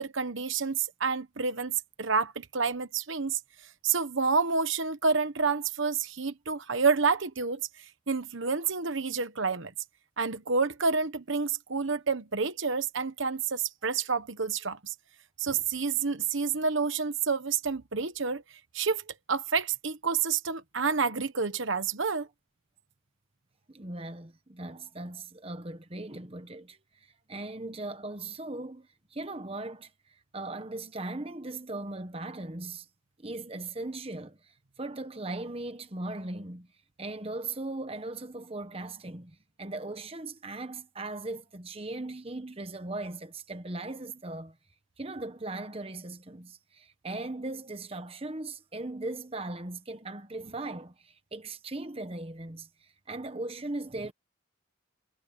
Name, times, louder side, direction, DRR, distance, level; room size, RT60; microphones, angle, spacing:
voice 1, 0.0-3.4 3.8-7.6 8.1-9.7 10.2-14.9 15.4-18.4 18.7-22.3, right 5 dB, 65° right, 1.1 m, -29 dB
voice 2, 23.7-29.9 30.3-32.9 33.2-36.7 37.0-44.6 45.0-54.1, right 2 dB, 25° right, 1.1 m, -38 dB
head